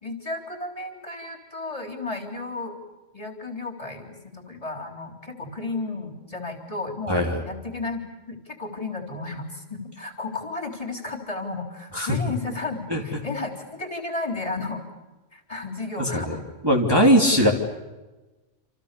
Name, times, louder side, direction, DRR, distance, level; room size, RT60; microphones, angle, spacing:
voice 1, 0.0-2.8 3.1-14.8 15.3-16.4 17.3-17.5, left 3 dB, 25° left, 3 dB, 3.7 m, -33 dB
voice 2, 7.1-7.4 11.9-12.1 12.9-13.2 16.0-16.2 16.6-17.5, equal, 20° right, 0 dB, 3.0 m, -20 dB
28.0 x 28.0 x 6.9 m, 1.1 s
omnidirectional pair, 1.3 m